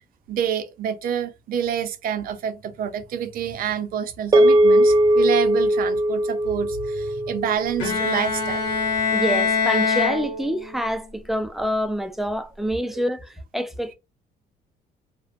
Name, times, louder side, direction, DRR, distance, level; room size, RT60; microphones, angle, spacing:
voice 1, 0.3-9.0 12.9-13.0, right 9 dB, 60° right, 0.6 m, -28 dB
sound 1, 4.3-8.8, right 1 dB, 20° right, 0.7 m, -20 dB
Bowed string instrument, 7.8-10.9, left 5 dB, 85° left, 0.8 m, -24 dB
voice 2, 9.1-13.9, equal, ahead, 0.3 m, -26 dB
2.5 x 2.1 x 2.4 m
cardioid pair, 110°, 17 cm